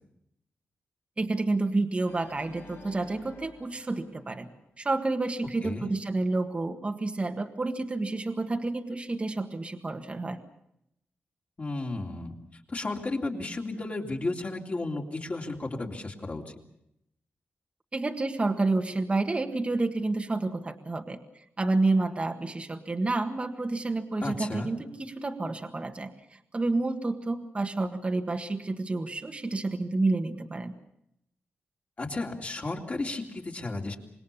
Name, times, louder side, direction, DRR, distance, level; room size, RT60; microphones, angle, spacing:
voice 1, 1.2-4.5 4.8-10.4 17.9-21.2 21.6-30.7, right 2 dB, 30° right, 5 dB, 1.6 m, -29 dB
Organ, 2.0-5.1, left 3 dB, 90° left, 3.2 m, -51 dB
voice 2, 11.6-16.6 24.2-24.7 32.0-34.0, left 2 dB, 35° left, 1 dB, 3.3 m, -33 dB
26.0 x 20.5 x 7.1 m, 0.80 s
wide cardioid pair, 100°, 4 cm